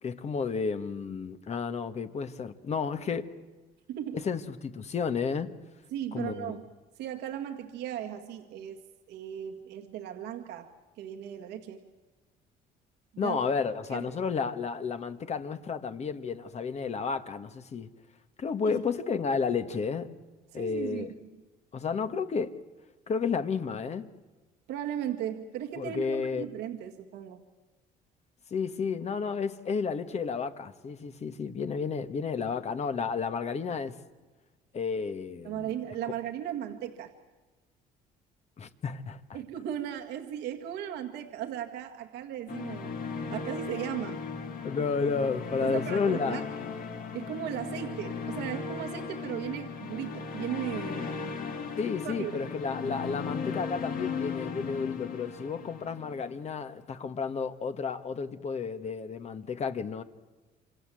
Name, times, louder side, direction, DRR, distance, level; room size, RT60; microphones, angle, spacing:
voice 1, 0.0-3.3 4.1-5.5 6.1-6.6 13.2-17.9 18.4-20.2 20.5-21.1 21.7-22.6 23.1-24.1 25.8-26.5 28.5-34.0 34.7-35.7 38.6-39.4 44.6-46.4 51.8-60.0, left 5 dB, 40° left, 1.7 m, -32 dB
voice 2, 3.9-4.2 5.9-6.6 7.0-8.8 9.1-10.7 11.0-11.8 13.1-13.4 13.9-14.1 20.5-21.1 24.7-27.4 35.4-37.1 39.3-42.9 43.3-44.2 45.6-46.4 47.1-51.2 52.0-52.5, right 10 dB, 85° right, 2.0 m, -36 dB
sound 1, 42.5-56.6, left 5 dB, 55° left, 2.7 m, -37 dB
27.0 x 27.0 x 7.8 m
cardioid pair, 110°, 17 cm